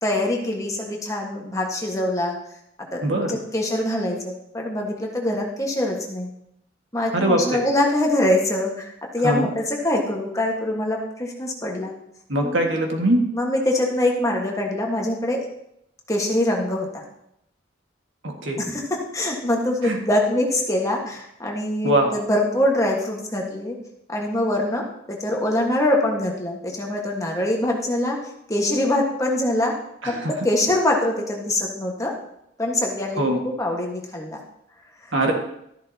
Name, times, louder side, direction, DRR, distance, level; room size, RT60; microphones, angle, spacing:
voice 1, 0.0-2.4 2.9-6.3 6.9-11.9 12.4-12.7 13.3-15.5 16.1-17.0 18.6-23.7 24.1-29.7 30.1-32.1 32.6-34.4, left 1 dB, 15° left, 0 dB, 1.5 m, -24 dB
voice 2, 3.0-3.4 7.1-7.7 9.2-9.5 12.3-13.2 18.2-18.6 19.8-20.0 21.8-22.1 30.0-30.3 33.2-33.4 35.1-35.3, right 1 dB, 75° right, 2 dB, 1.8 m, -22 dB
13.0 x 11.0 x 2.9 m, 0.78 s
head